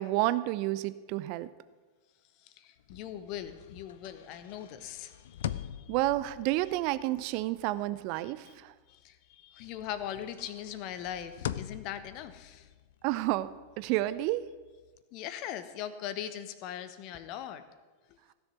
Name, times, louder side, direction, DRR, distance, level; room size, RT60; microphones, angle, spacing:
voice 1, 0.0-1.5 5.9-8.7 13.0-13.5 13.8-14.4, right 16 dB, 45° right, 15 dB, 0.6 m, -30 dB
voice 2, 2.4-5.9 8.2-8.5 8.9-12.7 15.1-17.6 18.1-18.2, left 10 dB, 40° left, 12 dB, 1.1 m, -41 dB
sound 1, 2.8-9.3 9.6-15.0, left 10 dB, 60° left, 0.5 m, -44 dB
16.0 x 7.1 x 9.4 m, 1.3 s
figure-of-eight pair, 90°, 0 cm